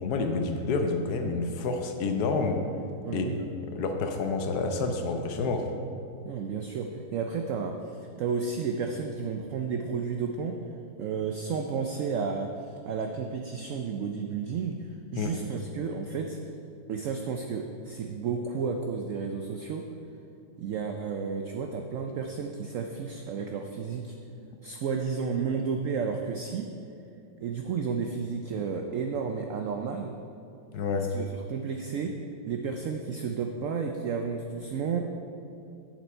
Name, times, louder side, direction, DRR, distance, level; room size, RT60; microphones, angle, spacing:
voice 1, 0.0-2.6 3.1-3.3 3.7-5.7 15.2-15.4 30.7-31.1, left 4 dB, 70° left, 5 dB, 1.2 m, -28 dB
voice 2, 3.1-3.4 6.2-10.6 11.0-16.4 16.9-19.9 20.6-24.2 24.6-26.7 27.4-30.1 31.1-35.0, right 5 dB, 85° right, 4 dB, 0.7 m, -32 dB
8.1 x 7.1 x 4.4 m, 2.6 s
omnidirectional pair, 1.9 m